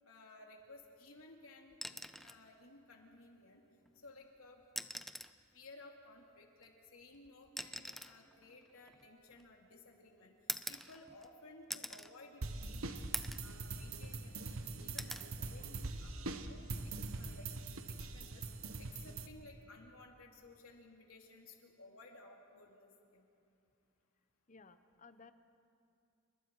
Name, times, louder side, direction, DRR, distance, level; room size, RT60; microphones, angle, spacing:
voice 1, 0.0-3.6 3.9-4.6 5.5-10.3 10.7-13.0 13.4-17.5 17.9-18.4 18.8-23.2, left 2 dB, 85° left, 1 dB, 3.1 m, -57 dB
sound 1, 1.7-2.4 3.9-4.0 4.6-5.4 6.6-9.7 10.5-11.3 11.7-12.1 12.6-12.7 13.1-13.5 13.9-14.6 15.0-15.3 16.8-17.0, left 1 dB, ahead, 0.5 m, -44 dB
sound 2, 12.4-19.3, right 3 dB, 80° right, 1.2 m, -43 dB
voice 2, 24.5-25.3, left 4 dB, 35° left, 11 dB, 0.9 m, -59 dB
29.0 x 23.5 x 4.8 m, 2.5 s
head